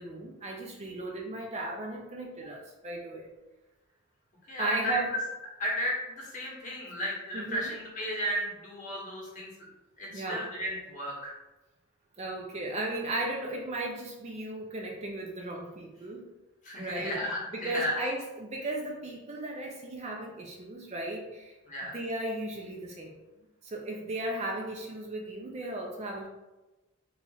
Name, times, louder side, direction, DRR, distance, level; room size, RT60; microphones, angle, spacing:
voice 1, 0.0-3.3 4.6-5.1 7.3-7.7 10.1-10.5 12.2-16.2 16.8-21.6 21.9-23.2 23.6-26.3, right 2 dB, 30° right, 0 dB, 0.4 m, -36 dB
voice 2, 4.5-5.0 5.6-9.5 10.0-11.3 16.6-17.9 21.7-21.9, equal, 35° left, -4 dB, 1.1 m, -34 dB
3.1 x 2.4 x 3.8 m, 1.0 s
head